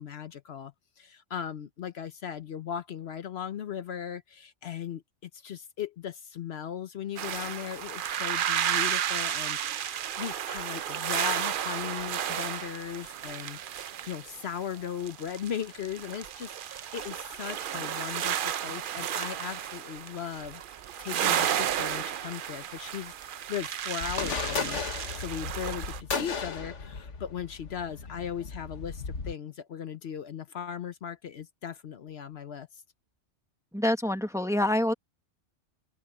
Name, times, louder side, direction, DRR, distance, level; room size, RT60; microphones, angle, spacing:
voice 1, 0.0-24.8 25.1-32.8, left 8 dB, 65° left, 1.0 m, -38 dB
sound 1, 7.2-26.0, right 10 dB, 55° right, 0.6 m, -33 dB
sound 2, 24.0-29.3, left 5 dB, 90° left, 1.8 m, -35 dB
voice 2, 33.7-34.9, left 1 dB, 5° right, 1.1 m, -26 dB
open air
omnidirectional pair, 1.2 m